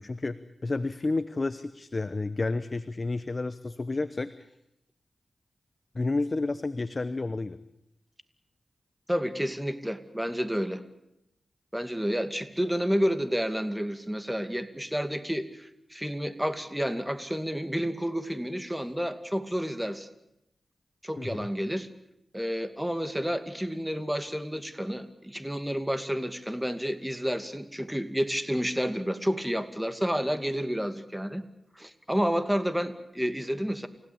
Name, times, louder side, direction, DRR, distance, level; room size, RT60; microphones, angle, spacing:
voice 1, 0.0-4.5 5.9-7.6 21.2-21.5, left 3 dB, 45° left, 13 dB, 0.9 m, -31 dB
voice 2, 9.1-10.8 11.7-20.1 21.0-21.9 22.3-31.4 31.8-33.9, equal, 5° right, 10 dB, 2.4 m, -30 dB
29.5 x 16.5 x 8.7 m, 0.84 s
cardioid pair, 50°, 0 cm